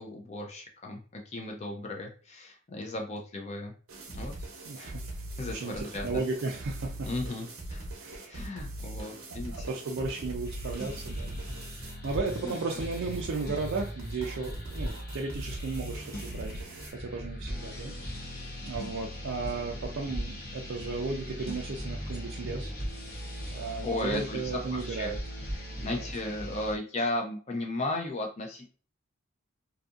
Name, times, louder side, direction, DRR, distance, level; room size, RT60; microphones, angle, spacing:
voice 1, 0.0-3.7 4.1-4.3 4.8-5.0 5.4-6.2 7.0-7.9 8.3-9.7 12.4-12.8 23.8-25.1 25.8-28.7, left 2 dB, 30° left, 2 dB, 0.4 m, -35 dB
sound 1, 3.9-16.9, right 1 dB, 90° right, 0.7 m, -41 dB
voice 2, 4.7-5.0 5.5-7.1 8.0-8.5 9.3-11.4 11.8-16.6 16.9-17.9 18.3-22.7 23.5-25.2 25.8-26.0, right 4 dB, 60° right, -1 dB, 0.4 m, -35 dB
sound 2, 10.4-26.7, equal, 45° left, 0.8 m, -39 dB
2.6 x 2.5 x 2.4 m, 0.40 s
head